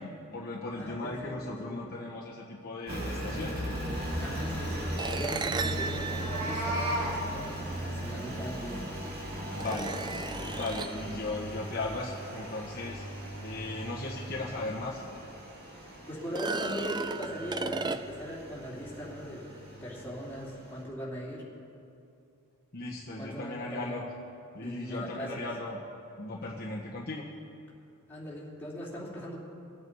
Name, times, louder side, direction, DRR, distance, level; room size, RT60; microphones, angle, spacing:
voice 1, 0.0-3.6 9.5-9.9 10.5-13.0 13.4-15.0 22.7-24.0 24.5-25.8 26.2-27.2, left 2 dB, 45° left, -4 dB, 1.4 m, -37 dB
voice 2, 0.8-1.3 1.7-1.8 4.2-8.8 16.1-21.4 23.2-24.0 24.6-25.4 28.1-29.4, equal, 10° left, -7 dB, 3.2 m, -39 dB
Engine, 2.9-20.8, right 1 dB, 45° right, 2.6 m, -38 dB
sound 1, 5.0-7.5 8.7-8.8 9.5-11.1 14.4-14.5 14.9-15.0 16.2-18.4, right 4 dB, 20° right, 0.3 m, -35 dB
Meow, 6.0-7.1, right 1 dB, 90° right, 3.8 m, -32 dB
23.5 x 8.3 x 4.7 m, 2.6 s
head